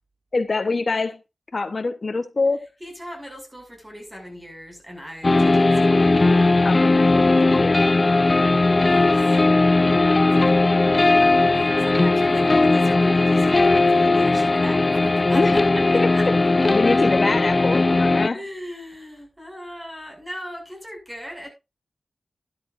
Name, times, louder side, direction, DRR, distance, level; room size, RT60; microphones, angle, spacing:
voice 1, 0.3-1.2 1.5-2.7 6.6-7.8 9.8-10.2 15.3-15.6 15.9-16.1 16.7-18.4, left 3 dB, 60° left, 1.0 m, -25 dB
voice 2, 2.8-6.1 8.9-9.4 9.7-10.3 10.8-15.6 16.1-16.2 18.3-21.5, equal, 15° right, 6.4 m, -39 dB
sound 1, 5.2-18.3, left 2 dB, 45° left, 0.6 m, -18 dB
13.0 x 11.5 x 2.6 m
wide cardioid pair, 55°, 0 cm